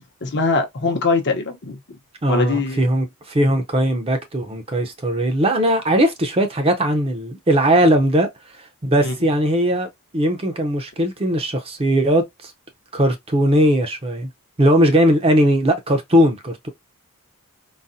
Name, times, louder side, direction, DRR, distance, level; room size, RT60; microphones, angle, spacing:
voice 1, 0.2-1.8 2.3-2.8 9.0-9.1, left 3 dB, 50° left, 0.8 m, -21 dB
voice 2, 2.2-8.3 8.8-12.5 12.9-14.3 14.6-16.7, equal, 25° right, 0.6 m, -19 dB
4.0 x 2.1 x 2.6 m
head